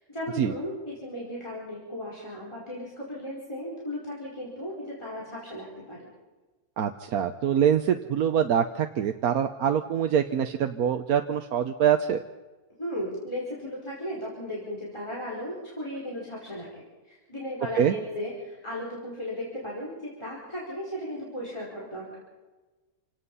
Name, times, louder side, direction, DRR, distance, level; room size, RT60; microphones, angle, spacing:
voice 1, 0.0-6.1 12.8-22.2, equal, 20° left, -5 dB, 4.9 m, -36 dB
voice 2, 6.8-12.2 17.8-17.9, right 8 dB, 80° right, 6 dB, 1.3 m, -24 dB
27.5 x 18.0 x 5.6 m, 1.2 s
omnidirectional pair, 1.6 m